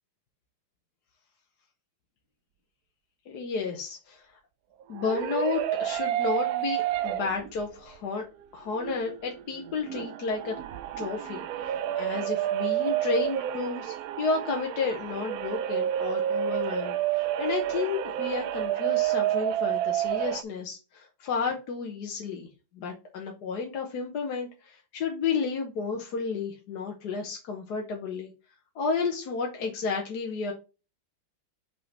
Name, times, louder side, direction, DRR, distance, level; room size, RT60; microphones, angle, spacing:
voice 1, 3.3-4.4 4.9-8.3 8.5-10.6 11.0-22.5 22.7-28.3 28.7-30.5, left 5 dB, 60° left, 1 dB, 1.4 m, -32 dB
sound 1, 4.8-7.6 8.0-8.1 8.7-20.4, right 12 dB, 80° right, 0.8 m, -30 dB
5.5 x 4.2 x 4.0 m, 0.31 s
omnidirectional pair, 2.1 m